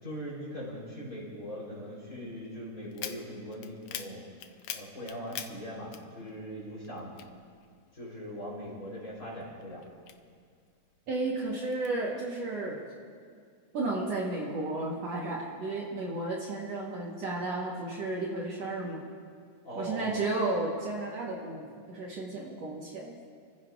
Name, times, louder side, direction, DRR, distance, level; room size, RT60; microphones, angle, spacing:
voice 1, 0.0-7.1 7.9-9.9 19.6-20.3, equal, 25° left, -5 dB, 4.2 m, -41 dB
sound 1, 2.9-6.6 6.8-8.2 8.6-10.7 11.2-11.9, left 9 dB, 80° left, 1.4 m, -43 dB
voice 2, 11.1-12.8 13.7-19.0 19.8-23.2, right 2 dB, 60° right, -4 dB, 2.3 m, -33 dB
29.5 x 15.0 x 2.5 m, 2.1 s
omnidirectional pair, 3.8 m